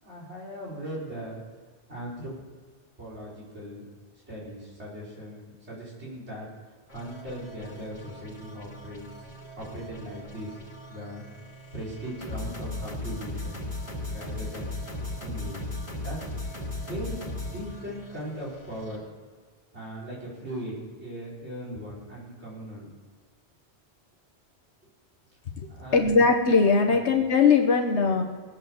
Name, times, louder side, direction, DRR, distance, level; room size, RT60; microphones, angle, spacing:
voice 1, 0.0-1.4 1.9-2.3 3.0-3.9 4.3-6.5 6.9-9.1 9.6-10.6 10.9-11.2 11.7-13.6 14.1-14.7 15.2-16.5 16.8-19.0 19.7-22.9 25.7-26.1 26.9-27.0, equal, 85° right, -7 dB, 5.2 m, -39 dB
sound 1, 6.9-19.0, left 1 dB, 70° left, 2.8 m, -38 dB
voice 2, 25.6-28.2, left 4 dB, 90° left, 4 dB, 1.4 m, -21 dB
19.5 x 8.0 x 7.2 m, 1.5 s
omnidirectional pair, 1.1 m